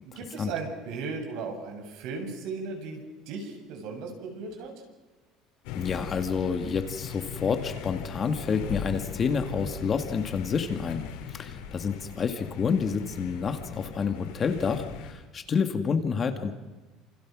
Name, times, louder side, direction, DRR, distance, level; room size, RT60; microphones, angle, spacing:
voice 1, 0.0-4.7, right 4 dB, 60° right, 3 dB, 7.7 m, -36 dB
sound 1, 5.6-15.1, left 8 dB, 85° left, 5.2 m, -39 dB
voice 2, 5.7-11.0 11.3-16.5, left 6 dB, 25° left, 6 dB, 1.9 m, -29 dB
30.0 x 28.0 x 6.2 m, 1.2 s
cardioid pair, 170°, 0 cm